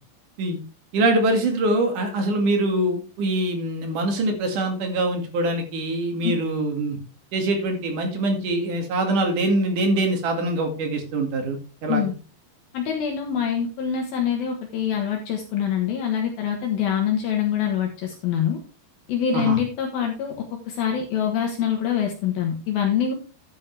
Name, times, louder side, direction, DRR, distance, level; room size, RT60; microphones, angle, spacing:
voice 1, 0.9-7.0 7.3-12.1 19.3-19.6, right 2 dB, 55° right, 4 dB, 3.4 m, -24 dB
voice 2, 12.7-18.6 19.1-20.4 20.7-23.1, left 8 dB, 65° left, 2 dB, 3.0 m, -25 dB
11.5 x 9.6 x 3.4 m, 0.36 s
omnidirectional pair, 4.9 m